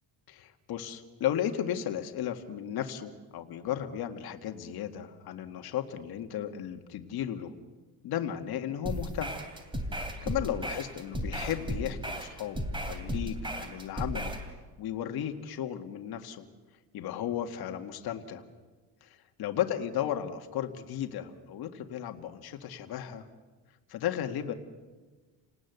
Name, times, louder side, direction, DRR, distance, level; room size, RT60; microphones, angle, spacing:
voice 1, 0.3-7.5 8.0-9.3 9.9-14.3 14.8-16.4 16.9-18.4 19.0-23.3 23.9-24.5, left 10 dB, 55° left, 5 dB, 1.9 m, -35 dB
sound 1, 8.8-14.5, equal, 10° right, 3.1 m, -35 dB
29.5 x 19.0 x 8.1 m, 1.3 s
cardioid pair, 160°, 44 cm